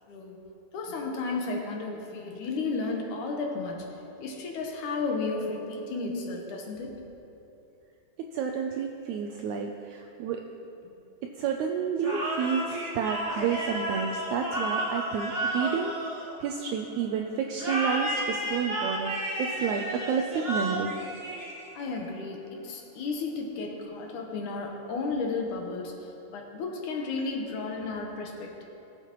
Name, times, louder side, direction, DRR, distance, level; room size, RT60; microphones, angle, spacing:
voice 1, 0.7-3.9 4.2-7.0 10.8-10.9 21.8-28.6, left 3 dB, 75° left, 1 dB, 2.4 m, -33 dB
voice 2, 8.3-10.5 11.4-16.1 16.4-21.0, right 7 dB, 80° right, 3 dB, 1.7 m, -30 dB
sound 1, 12.0-16.8 17.6-22.0, right 1 dB, 55° right, 0.6 m, -32 dB
19.0 x 7.4 x 3.0 m, 2.8 s
omnidirectional pair, 3.8 m